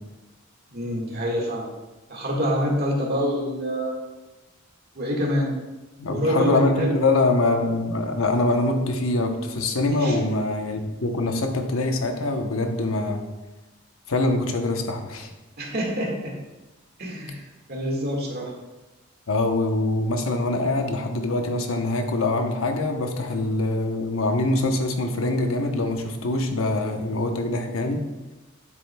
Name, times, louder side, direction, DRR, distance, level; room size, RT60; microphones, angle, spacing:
voice 1, 0.7-1.7 2.1-3.9 5.0-5.5 6.1-6.9 9.8-10.2 15.6-16.4 17.0-18.5, equal, 50° right, -1 dB, 1.8 m, -26 dB
voice 2, 6.0-13.2 14.1-15.3 19.3-28.0, left 2 dB, 80° left, 4 dB, 0.9 m, -24 dB
9.8 x 7.6 x 2.3 m, 1.1 s
head